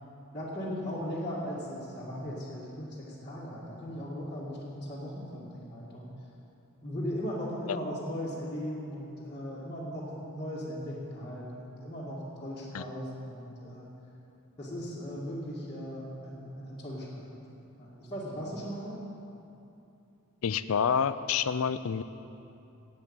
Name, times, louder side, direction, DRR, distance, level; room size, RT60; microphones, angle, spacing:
voice 1, 0.3-6.1 6.8-13.9 14.6-17.4 17.8-19.0, equal, 20° left, -9 dB, 1.8 m, -38 dB
voice 2, 20.4-22.0, left 7 dB, 70° left, 13 dB, 0.4 m, -28 dB
10.5 x 8.2 x 8.8 m, 2.8 s
head